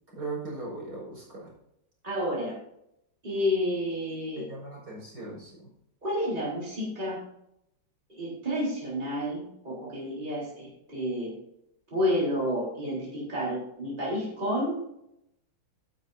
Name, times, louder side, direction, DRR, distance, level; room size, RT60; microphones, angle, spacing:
voice 1, 0.2-1.5 4.4-5.5, right 3 dB, 55° right, -3 dB, 5.3 m, -38 dB
voice 2, 2.0-2.5 3.2-4.5 6.0-7.2 8.1-11.3 11.9-14.9, equal, 25° right, -6 dB, 4.1 m, -30 dB
12.0 x 10.5 x 2.7 m, 0.78 s
omnidirectional pair, 2.1 m